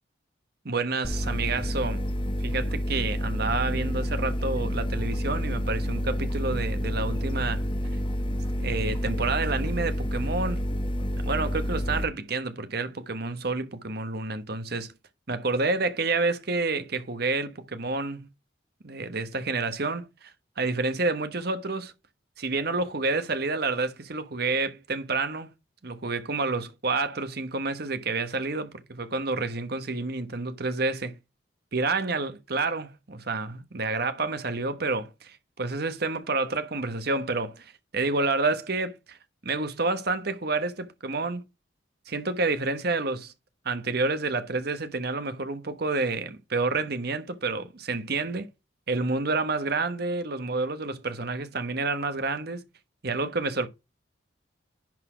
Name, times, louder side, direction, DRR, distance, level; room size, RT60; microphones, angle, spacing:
voice 1, 0.6-2.0 2.4-7.7 8.6-10.6 11.2-14.9 15.3-18.2 18.8-20.3 20.6-21.9 22.4-25.5 25.8-31.2 31.7-39.2 39.4-41.4 42.1-43.3 43.6-48.5 48.9-52.6 53.0-53.7, right 3 dB, 55° right, 1.1 m, -29 dB
sound 1, 1.0-12.1, equal, 25° left, 0.9 m, -29 dB
10.5 x 4.0 x 5.0 m
head